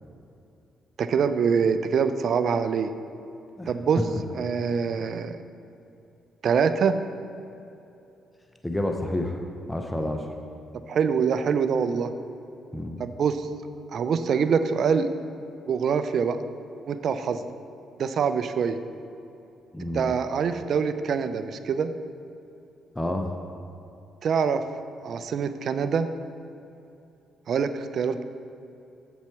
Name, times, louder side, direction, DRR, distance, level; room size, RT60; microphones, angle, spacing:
voice 1, 1.0-2.9 3.7-4.0 4.3-5.4 6.4-7.0 10.9-12.1 13.0-13.5 13.9-15.1 15.7-16.4 16.9-17.4 18.0-18.8 19.9-21.9 24.2-24.6 25.0-26.1 27.5-28.2, right 6 dB, 60° right, 11 dB, 0.4 m, -24 dB
voice 2, 8.6-9.4 9.7-10.3 12.7-13.0 19.7-20.1 23.0-23.3, left 1 dB, 10° left, 3 dB, 0.6 m, -29 dB
7.4 x 7.1 x 4.6 m, 2.7 s
cardioid pair, 90°, 0 cm